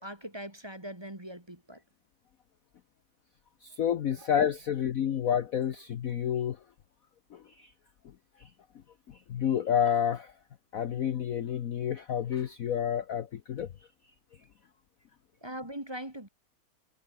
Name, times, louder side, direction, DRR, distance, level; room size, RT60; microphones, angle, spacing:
voice 1, 0.0-1.8 4.2-4.3 15.4-16.3, right 1 dB, 15° right, 1.9 m, -41 dB
voice 2, 3.6-6.6 7.3-7.7 8.4-8.5 9.1-10.3 10.7-13.7, left 9 dB, 55° left, 1.1 m, -29 dB
omnidirectional pair, 2.2 m